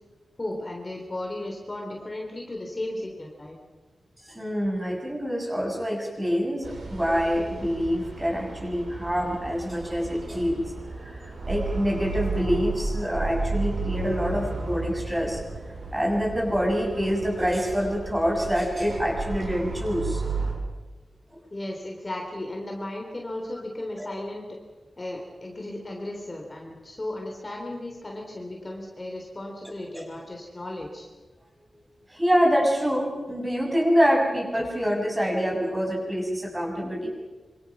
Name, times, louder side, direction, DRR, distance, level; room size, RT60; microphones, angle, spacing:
voice 1, 0.4-3.5 21.5-24.5 25.0-31.1, left 1 dB, 25° left, 0 dB, 3.5 m, -35 dB
voice 2, 4.2-10.7 11.0-15.4 15.9-20.2 24.0-24.1 29.9-30.1 32.1-37.1, equal, 15° right, -1 dB, 7.2 m, -26 dB
sound 1, 6.6-20.5, right 3 dB, 80° right, 7.7 m, -33 dB
26.5 x 25.5 x 6.2 m, 1.3 s
wide cardioid pair, 140°, 0 cm